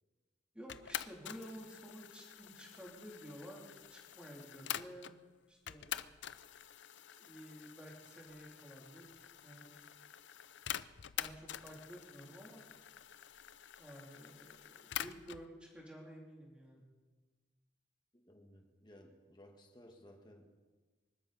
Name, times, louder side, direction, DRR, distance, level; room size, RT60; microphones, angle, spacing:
voice 1, 0.5-5.1 5.5-5.9 7.2-9.7 11.2-12.6 13.8-16.8, equal, 5° right, -3 dB, 3.4 m, -52 dB
sound 1, 0.7-5.2 5.7-15.5, left 10 dB, 80° left, 0.5 m, -47 dB
voice 2, 18.1-20.5, left 1 dB, 25° left, 2 dB, 1.9 m, -59 dB
24.5 x 13.0 x 4.3 m, 1.3 s
head